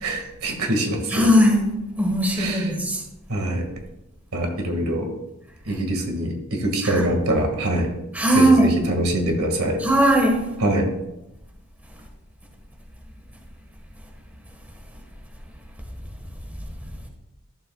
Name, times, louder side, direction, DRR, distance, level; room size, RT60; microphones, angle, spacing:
voice 1, 0.0-1.3 2.4-2.7 3.3-3.7 4.3-5.1 5.7-7.9 8.4-9.8 10.6-10.9, right 1 dB, 80° right, 2 dB, 2.0 m, -24 dB
voice 2, 1.1-1.6 2.0-3.0 6.8-7.1 8.1-8.7 9.8-10.5, equal, 5° right, 0 dB, 1.4 m, -18 dB
13.0 x 7.3 x 2.3 m, 0.89 s
head